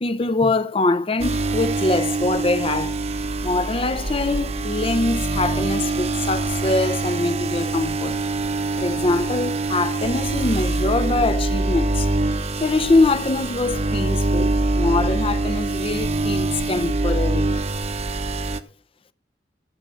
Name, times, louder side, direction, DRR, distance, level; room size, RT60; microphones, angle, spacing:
voice 1, 0.0-3.0 3.4-8.2 8.8-12.1 12.6-17.6, left 2 dB, 30° left, 0.6 m, -23 dB
sound 1, 1.2-18.6, right 2 dB, 35° right, 0.8 m, -24 dB
15.0 x 7.5 x 5.5 m
head